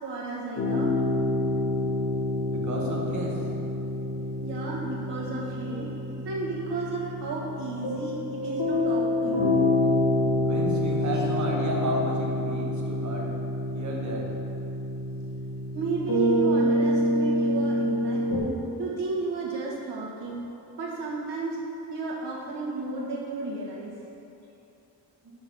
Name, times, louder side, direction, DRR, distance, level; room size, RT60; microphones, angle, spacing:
voice 1, 0.0-0.9 4.4-5.9 6.2-9.5 15.7-18.2 18.8-20.4 20.8-21.6 21.9-23.9, right 3 dB, 85° right, -5 dB, 1.6 m, -33 dB
sound 1, 0.6-18.4, left 1 dB, 50° left, 1.2 m, -27 dB
voice 2, 2.5-3.4 10.4-13.3 13.7-14.3, right 1 dB, 45° right, -2 dB, 1.1 m, -32 dB
7.0 x 3.8 x 5.8 m, 2.8 s
wide cardioid pair, 170°, 40 cm